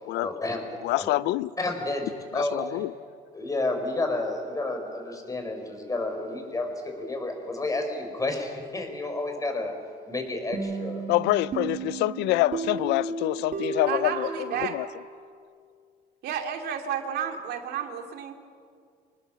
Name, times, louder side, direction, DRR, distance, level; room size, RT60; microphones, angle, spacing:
voice 1, 0.1-0.6 1.0-1.1 1.6-2.8 3.3-9.7 10.1-11.0, left 2 dB, 20° left, 4.7 m, -30 dB
voice 2, 0.8-1.5 2.3-2.9 11.1-14.9, left 17 dB, 85° left, 0.5 m, -26 dB
sound 1, 10.5-15.2, right 4 dB, 50° right, 2.6 m, -34 dB
voice 3, 13.9-14.8 16.2-18.3, right 8 dB, 75° right, 2.5 m, -31 dB
26.5 x 19.5 x 7.3 m
cardioid pair, 110°, 17 cm